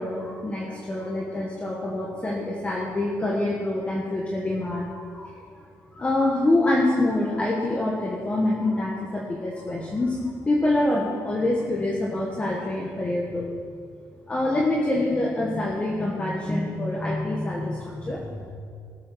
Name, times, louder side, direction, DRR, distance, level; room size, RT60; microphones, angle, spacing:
voice 1, 0.0-5.6 5.9-13.5 14.3-18.5, left 2 dB, 20° left, -2 dB, 1.5 m, -26 dB
18.5 x 7.5 x 6.4 m, 2.3 s
cardioid pair, 140°, 7 cm